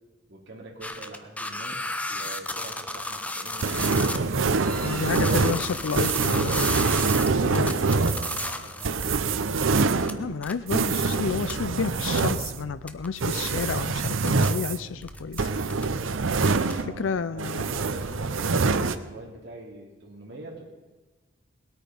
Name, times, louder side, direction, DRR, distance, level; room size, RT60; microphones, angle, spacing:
voice 1, 0.3-1.8 2.1-3.8 4.6-6.0 7.1-9.0 16.6-20.6, right 2 dB, 60° right, -2 dB, 3.1 m, -43 dB
sound 1, 0.8-4.2 4.5-9.2 9.6-10.1 10.4-10.5 11.0-11.2 11.5-11.6 11.9-12.0 12.2-12.3 12.9-13.1 13.5-13.6 14.2-14.6 15.0-15.9 16.3-16.7, left 2 dB, 5° left, 0.7 m, -34 dB
sound 2, 3.6-17.1 17.4-19.0, right 4 dB, 90° right, 0.7 m, -25 dB
voice 2, 4.8-6.8 7.4-7.8 10.2-15.5 17.0-17.6, left 5 dB, 80° left, 13 dB, 0.5 m, -31 dB
19.0 x 8.8 x 5.4 m, 1.2 s
head